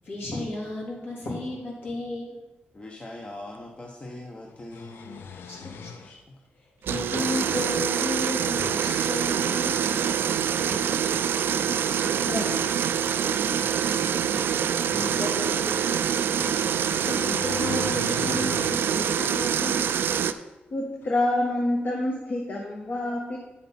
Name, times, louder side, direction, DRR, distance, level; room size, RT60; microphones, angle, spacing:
voice 1, 0.0-2.4 5.3-6.1 6.8-9.9 13.9-19.9, left 2 dB, 65° left, -5 dB, 3.4 m, -35 dB
voice 2, 2.7-5.3 6.0-6.4, left 1 dB, 30° left, 0 dB, 0.9 m, -42 dB
sound 1, 3.5-3.6 4.5-6.2 7.2-7.9 8.4-8.9 10.5-10.9 11.9-12.8 13.4-15.5 16.7-18.9 19.4-19.5 21.0-21.1, left 6 dB, 85° left, 0.5 m, -40 dB
sound 2, 6.8-20.3, right 8 dB, 80° right, 0.4 m, -25 dB
voice 3, 12.0-12.7 15.2-15.6 20.7-23.4, left 1 dB, 50° left, -1 dB, 1.2 m, -28 dB
9.3 x 7.3 x 4.3 m, 1.1 s
wide cardioid pair, 135°, 4 cm